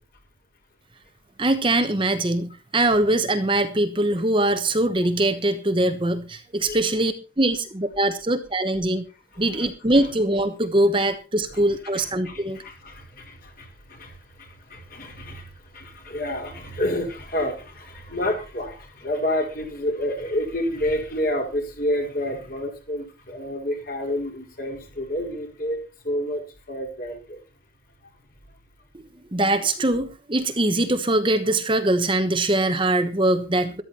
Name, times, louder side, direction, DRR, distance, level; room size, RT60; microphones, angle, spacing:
voice 1, 1.4-9.0 9.4-12.6 29.3-33.8, right 1 dB, 25° right, 8 dB, 1.1 m, -22 dB
voice 2, 9.3-9.7 11.5-11.6 11.9-27.4, left 1 dB, 50° left, 2 dB, 4.7 m, -29 dB
13.5 x 12.5 x 4.3 m, 0.32 s
head